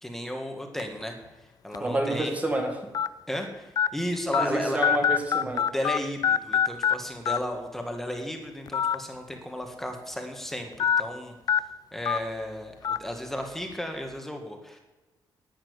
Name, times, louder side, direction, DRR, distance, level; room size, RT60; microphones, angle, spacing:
voice 1, 0.0-1.1 1.6-2.3 3.3-4.8 5.5-11.3 11.9-14.8, left 1 dB, 5° left, 3 dB, 1.8 m, -34 dB
sound 1, 0.8-1.0 1.7-1.8 2.9-3.1 3.8-3.9 4.3-4.4 4.8-6.0 6.2-6.9 7.3-7.4 8.7-8.9 9.3-9.4 10.8-11.0 11.5-11.6 12.1-12.2 12.8-13.0, left 8 dB, 50° left, 0.6 m, -23 dB
voice 2, 1.8-2.9 4.4-5.7, right 1 dB, 15° right, 4 dB, 1.7 m, -29 dB
11.5 x 8.9 x 9.7 m, 1.1 s
cardioid pair, 150°, 8 cm